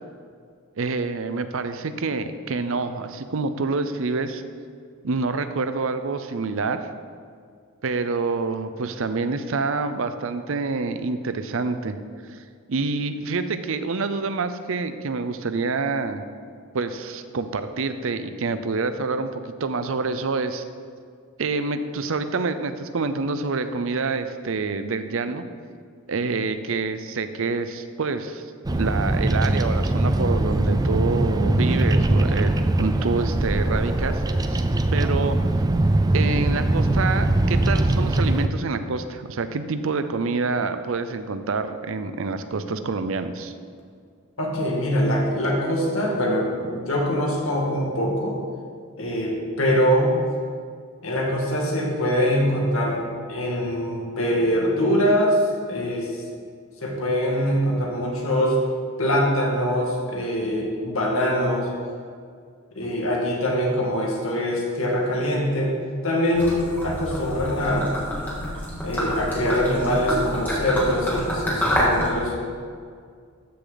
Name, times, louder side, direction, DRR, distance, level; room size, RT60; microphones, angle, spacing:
voice 1, 0.8-4.4 5.0-6.9 7.8-12.0 12.3-12.4 12.7-16.2 16.7-20.6 21.4-25.4 26.1-34.2 34.5-34.6 34.9-35.4 36.1-43.5, right 4 dB, 65° right, 10 dB, 0.6 m, -27 dB
Bird vocalization bird call bird song, 28.6-38.5, right 1 dB, 20° right, 0.4 m, -21 dB
voice 2, 44.4-48.4 49.0-50.1 51.0-55.4 55.7-56.1 56.8-58.6 59.0-61.7 62.8-65.8 66.0-67.9 68.8-72.3, equal, 75° left, -2 dB, 2.1 m, -23 dB
Gurgling / Liquid, 66.3-72.1, equal, 10° left, 2.4 m, -27 dB
13.5 x 6.6 x 4.0 m, 2.1 s
head